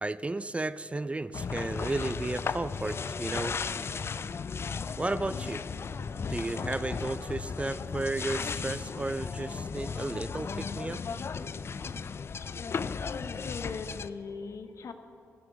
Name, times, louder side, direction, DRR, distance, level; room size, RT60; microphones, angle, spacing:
voice 1, 0.0-3.6 5.0-5.6 6.3-11.0, right 2 dB, 20° right, 15 dB, 0.4 m, -33 dB
sound 1, 1.3-14.1, left 5 dB, 50° left, 0.4 m, -35 dB
voice 2, 13.1-14.9, left 5 dB, 65° left, 8 dB, 0.8 m, -40 dB
15.0 x 7.6 x 5.1 m, 3.0 s
supercardioid pair, 45°, 5 cm